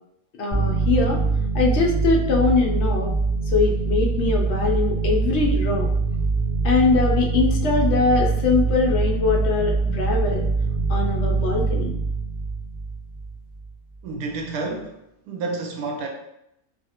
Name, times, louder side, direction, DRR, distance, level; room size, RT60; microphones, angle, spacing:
voice 1, 0.4-1.2 1.5-3.1 3.5-5.9 6.6-10.5 10.9-11.9, left 4 dB, 70° left, 0 dB, 0.6 m, -22 dB
sound 1, 0.5-13.7, right 4 dB, 10° right, 0.9 m, -23 dB
voice 2, 14.0-15.0 15.3-16.1, right 3 dB, 75° right, 2 dB, 1.0 m, -29 dB
2.6 x 2.4 x 2.8 m, 0.81 s
omnidirectional pair, 1.6 m